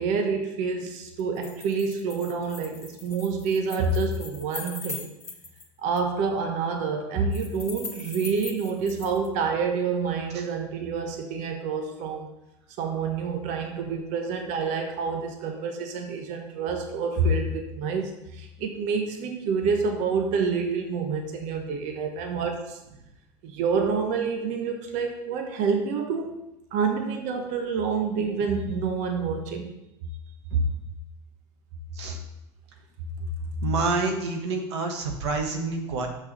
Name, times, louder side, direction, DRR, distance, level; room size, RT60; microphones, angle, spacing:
voice 1, 0.0-5.1 5.8-12.3 12.8-22.8 23.4-26.4 26.7-29.7 30.5-30.6, right 5 dB, 65° right, 4 dB, 1.1 m, -28 dB
sound 1, 1.2-5.7 6.0-6.1 7.3-9.3, left 4 dB, 20° left, 1.8 m, -41 dB
voice 2, 33.6-36.1, right 4 dB, 90° right, 3 dB, 1.3 m, -28 dB
6.0 x 4.7 x 6.6 m, 0.91 s
supercardioid pair, 95°, 14 cm